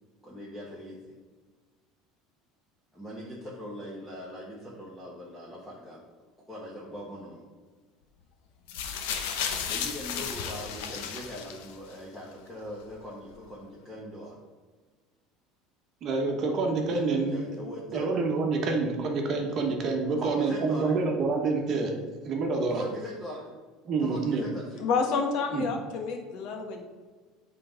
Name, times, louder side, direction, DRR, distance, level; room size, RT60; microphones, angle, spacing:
voice 1, 0.2-1.0 2.9-6.0 6.5-7.4 9.7-14.4 16.8-18.1 20.1-21.1 22.7-23.5 24.0-24.8, equal, ahead, -7 dB, 1.2 m, -41 dB
sound 1, 8.7-11.9 12.8-12.9, left 7 dB, 90° left, 0.9 m, -34 dB
voice 2, 16.0-17.4 17.9-21.9 22.2-22.8 23.9-24.4 25.5-25.7, right 4 dB, 35° right, 2 dB, 1.3 m, -27 dB
voice 3, 24.8-26.8, left 5 dB, 55° left, 3 dB, 1.2 m, -29 dB
8.4 x 3.9 x 5.1 m, 1.4 s
cardioid pair, 165°, 0 cm